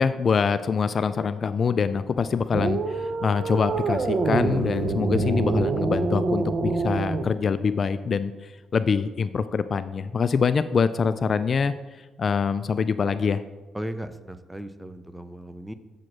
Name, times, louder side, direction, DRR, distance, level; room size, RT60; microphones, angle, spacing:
voice 1, 0.0-13.4, left 5 dB, 45° left, 12 dB, 0.3 m, -25 dB
sound 1, 1.7-7.2, left 1 dB, 20° left, 2.6 m, -47 dB
sound 2, 2.5-7.3, right 3 dB, 50° right, 0.6 m, -25 dB
voice 2, 13.7-15.7, right 1 dB, 5° right, 11 dB, 0.5 m, -36 dB
7.2 x 4.9 x 6.0 m, 1.2 s
cardioid pair, 90°, 0 cm